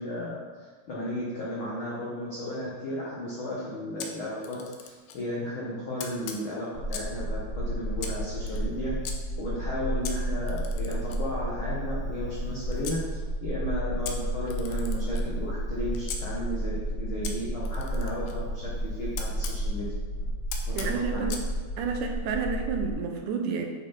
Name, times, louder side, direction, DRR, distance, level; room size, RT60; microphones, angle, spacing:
voice 1, 0.0-8.9 9.4-19.9 20.2-20.3 20.8-21.3, equal, 65° left, -7 dB, 1.3 m, -34 dB
Camera, 4.0-5.2 6.0-7.2 8.0-9.2 10.0-13.0 14.0-16.2 17.2-19.6 20.5-21.5, left 6 dB, 90° left, 2.3 m, -41 dB
sound 1, 6.7-22.9, right 1 dB, 15° left, 1.3 m, -32 dB
voice 2, 20.8-21.4 21.8-23.7, right 6 dB, 75° right, 3 dB, 2.0 m, -30 dB
8.1 x 4.0 x 4.3 m, 1.5 s
omnidirectional pair, 3.9 m